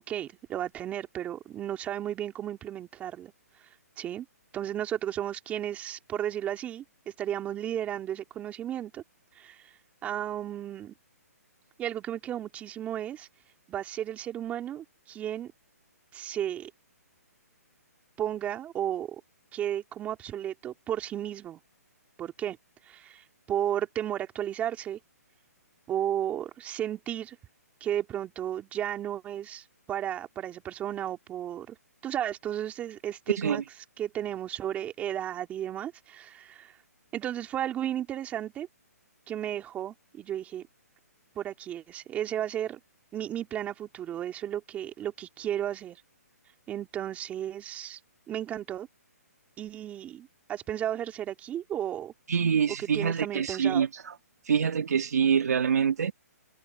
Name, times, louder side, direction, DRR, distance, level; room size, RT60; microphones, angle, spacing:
voice 1, 0.0-3.3 3.6-3.7 4.0-4.2 4.5-6.8 7.2-9.0 9.3-9.7 10.0-10.9 11.8-13.3 13.7-15.5 16.1-16.7 18.2-19.2 19.5-21.6 22.2-22.6 22.9-25.0 25.9-27.4 27.8-31.8 32.0-33.6 34.0-36.8 37.1-38.7 39.3-40.7 41.3-42.8 43.1-46.0 46.7-48.0 48.3-48.9 49.6-52.1 52.8-53.8, right 11 dB, 15° right, 3.0 m, -34 dB
voice 2, 52.3-54.1 54.5-56.1, right 7 dB, 70° right, 1.7 m, -25 dB
hypercardioid pair, 150°, 9 cm